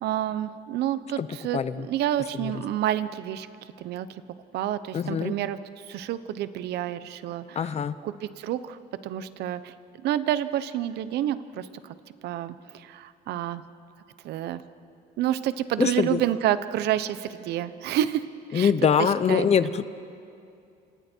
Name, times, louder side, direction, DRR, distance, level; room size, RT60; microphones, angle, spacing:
voice 1, 0.0-3.5 3.8-4.1 4.5-5.6 5.9-7.7 8.0-8.8 9.0-9.7 10.0-11.9 12.2-13.6 14.2-14.6 15.2-18.2 18.5-18.7 19.0-19.5, right 12 dB, 80° right, 13 dB, 1.0 m, -29 dB
voice 2, 1.5-1.9 2.4-2.6 4.9-5.3 7.5-8.0 15.8-16.2 18.5-19.9, left 7 dB, 40° left, 14 dB, 0.8 m, -23 dB
29.5 x 26.5 x 4.6 m, 2.5 s
cardioid pair, 110°, 17 cm